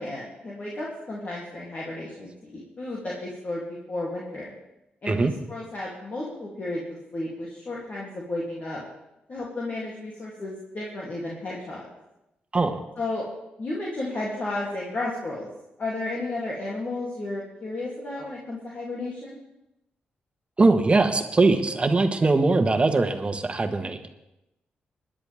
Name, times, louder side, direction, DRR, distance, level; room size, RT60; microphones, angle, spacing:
voice 1, 0.0-4.5 5.0-6.8 7.1-8.8 9.3-11.8 13.0-13.2 13.6-15.5 15.8-19.4, left 2 dB, 50° left, -5 dB, 3.0 m, -33 dB
voice 2, 20.6-24.0, right 3 dB, 30° right, 7 dB, 1.4 m, -21 dB
20.5 x 10.5 x 3.6 m, 0.91 s
supercardioid pair, 55°, 4 cm